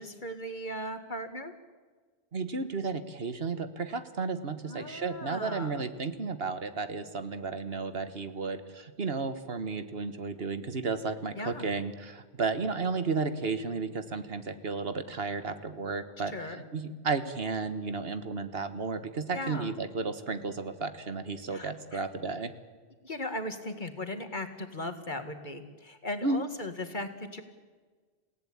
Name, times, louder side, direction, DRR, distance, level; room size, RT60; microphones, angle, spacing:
voice 1, 0.0-1.5 4.7-5.8 11.4-11.7 16.3-16.6 19.3-19.7 21.5-22.0 23.0-27.4, left 1 dB, 45° left, 8 dB, 2.1 m, -38 dB
voice 2, 2.3-22.5 26.2-26.4, right 4 dB, 65° right, 10 dB, 1.6 m, -33 dB
28.0 x 17.0 x 8.8 m, 1.4 s
omnidirectional pair, 1.1 m